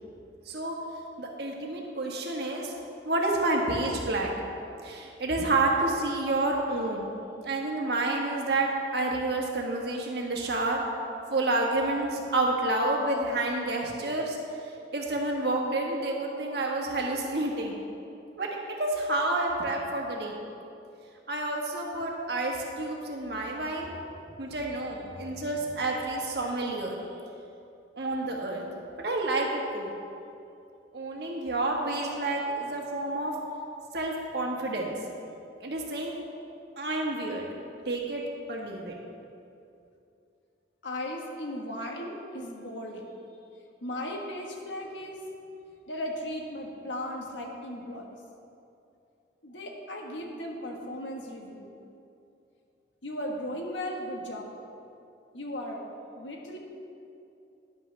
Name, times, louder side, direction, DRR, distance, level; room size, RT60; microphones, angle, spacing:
voice 1, 0.4-0.8 1.2-2.7 3.0-4.3 4.8-7.1 7.4-10.8 11.3-14.4 14.6-17.8 18.4-18.5 18.8-20.4 21.3-24.0 24.4-26.9 28.0-28.6 29.0-29.9 30.9-33.3 33.9-35.0 35.6-36.2 36.8-37.4 37.8-38.2 38.5-39.0, right 2 dB, 60° right, -1 dB, 1.5 m, -29 dB
voice 2, 40.8-43.1 43.8-45.2 45.9-48.2 49.4-51.7 53.0-54.5 55.3-55.9 56.2-56.6, left 1 dB, 85° left, 1 dB, 1.4 m, -36 dB
11.0 x 10.5 x 3.3 m, 2.7 s
head